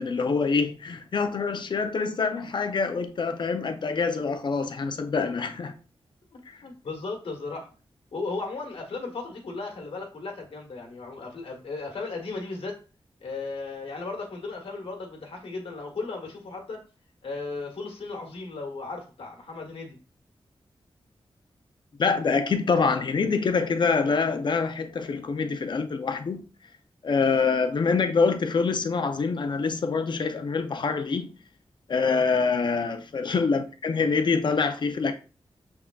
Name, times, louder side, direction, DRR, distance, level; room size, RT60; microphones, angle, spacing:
voice 1, 0.0-5.7 6.5-6.6 22.0-26.5 27.0-31.3 31.9-35.1, left 4 dB, 55° left, 0.5 m, -25 dB
voice 2, 6.3-7.7 8.1-12.8 13.2-16.8 17.2-20.0 32.0-32.2, left 3 dB, 70° left, 1.4 m, -36 dB
6.4 x 3.5 x 2.3 m
wide cardioid pair, 170°, 10 cm